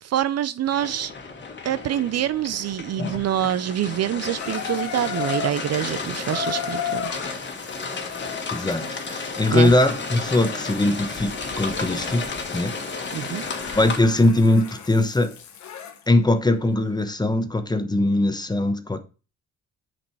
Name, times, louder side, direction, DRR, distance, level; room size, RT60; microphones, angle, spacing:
voice 1, 0.0-1.1 1.6-7.5 9.5-9.7 13.1-13.4, right 11 dB, 55° right, 0.5 m, -26 dB
sound 1, 0.7-14.0, left 4 dB, 40° left, 1.7 m, -33 dB
Water tap faucet / Bathtub (filling or washing), 4.4-16.0 16.9-17.0, left 9 dB, 70° left, 1.2 m, -36 dB
voice 2, 8.5-12.7 13.1-15.3 16.1-19.0, left 2 dB, 15° left, 1.0 m, -21 dB
7.1 x 5.2 x 4.7 m
cardioid pair, 90°, 30 cm